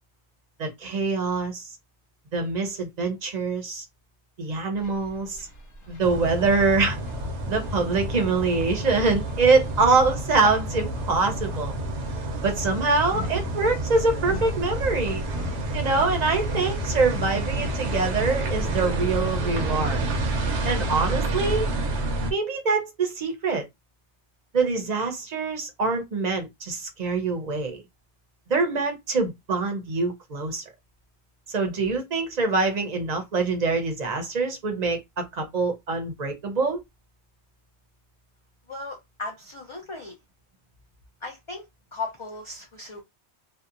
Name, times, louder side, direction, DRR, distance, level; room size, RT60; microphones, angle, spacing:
voice 1, 0.6-1.7 2.3-3.8 4.4-5.5 5.9-7.0 7.5-11.8 12.4-15.2 15.7-20.1 20.6-21.7 22.3-23.6 24.5-27.8 28.5-30.6 31.5-36.8, right 4 dB, 45° right, 0.7 m, -24 dB
sound 1, 4.8-21.4, left 2 dB, 90° left, 1.2 m, -40 dB
sound 2, 6.0-22.3, right 1 dB, 80° right, 0.9 m, -29 dB
voice 2, 38.7-40.2 41.2-41.7 41.9-43.0, left 3 dB, 40° left, 0.4 m, -36 dB
2.8 x 2.1 x 2.4 m
omnidirectional pair, 1.2 m